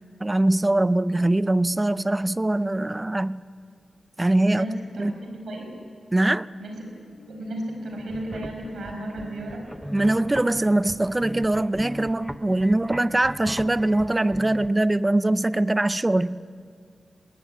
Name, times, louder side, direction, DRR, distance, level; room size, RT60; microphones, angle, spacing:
voice 1, 0.2-3.4 4.2-4.7 5.0-5.1 6.1-6.5 9.9-16.4, right 1 dB, 20° right, 0.5 m, -22 dB
voice 2, 4.5-5.7 6.6-6.9 7.3-9.6, right 1 dB, 85° right, 5.3 m, -34 dB
Marimba xylophone, 6.7-11.8, left 2 dB, 90° left, 7.0 m, -52 dB
sound 1, 7.9-14.7, equal, 5° right, 0.9 m, -39 dB
19.5 x 19.5 x 9.4 m
wide cardioid pair, 90°, 0 cm